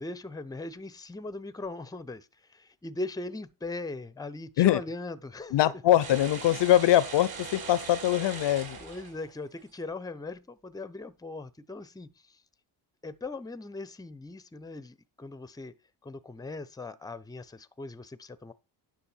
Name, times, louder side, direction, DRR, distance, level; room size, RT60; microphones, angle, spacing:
voice 1, 0.0-5.7 8.8-12.4 13.0-15.7 16.0-18.5, left 2 dB, 10° left, 0.7 m, -39 dB
voice 2, 5.5-8.8, left 13 dB, 60° left, 0.7 m, -23 dB
sound 1, 6.0-9.6, right 5 dB, 50° right, 3.6 m, -41 dB
10.0 x 6.2 x 4.5 m
cardioid pair, 95°, 48 cm